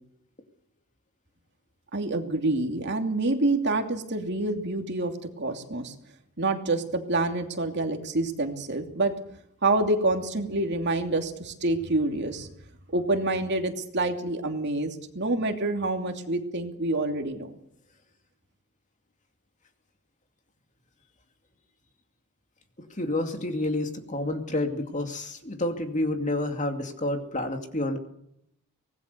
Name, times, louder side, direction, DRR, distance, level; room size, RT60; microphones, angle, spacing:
voice 1, 1.9-5.9 6.4-9.1 9.6-12.5 12.9-17.5, right 2 dB, 50° right, 4 dB, 2.8 m, -27 dB
voice 2, 22.8-28.0, left 1 dB, 35° left, 5 dB, 2.6 m, -29 dB
25.0 x 19.5 x 6.8 m, 0.73 s
head